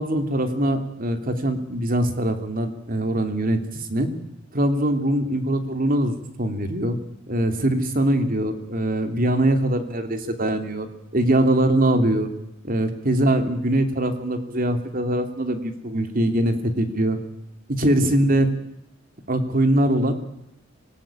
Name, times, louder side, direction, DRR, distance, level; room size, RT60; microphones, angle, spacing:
voice 1, 0.0-4.1 4.5-7.0 7.3-10.9 11.1-12.3 12.6-17.2 17.7-18.5 19.3-20.1, right 1 dB, 45° right, 7 dB, 3.0 m, -22 dB
25.5 x 19.5 x 9.0 m, 0.84 s
head